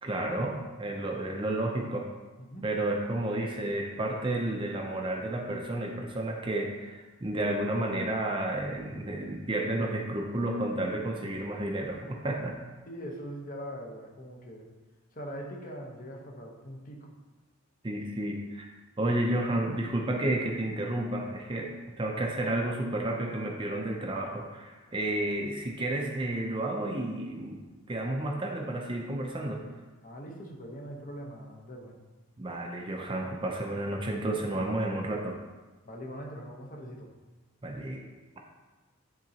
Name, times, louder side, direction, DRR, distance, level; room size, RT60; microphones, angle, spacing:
voice 1, 0.0-2.1 2.6-12.6 17.8-18.7 19.0-27.6 27.9-29.7 32.4-35.4 37.6-38.0, right 1 dB, 25° right, 1 dB, 0.5 m, -31 dB
voice 2, 12.9-14.7 15.1-17.1 30.0-32.0 34.5-34.8 35.8-37.1, equal, 40° left, 0 dB, 0.9 m, -42 dB
10.5 x 3.8 x 2.8 m, 1.3 s
head